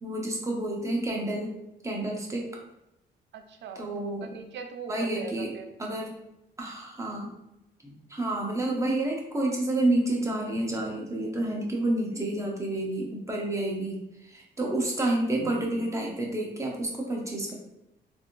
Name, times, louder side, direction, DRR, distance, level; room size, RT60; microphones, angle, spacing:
voice 1, 0.0-1.5 1.8-2.5 3.8-4.3 4.9-5.5 5.8-6.2 6.6-7.3 7.8-14.0 14.3-17.5, right 1 dB, 15° right, -1 dB, 0.8 m, -29 dB
voice 2, 3.3-5.7, right 5 dB, 65° right, 5 dB, 0.5 m, -41 dB
3.4 x 2.5 x 2.5 m, 0.89 s
cardioid pair, 90°, 20 cm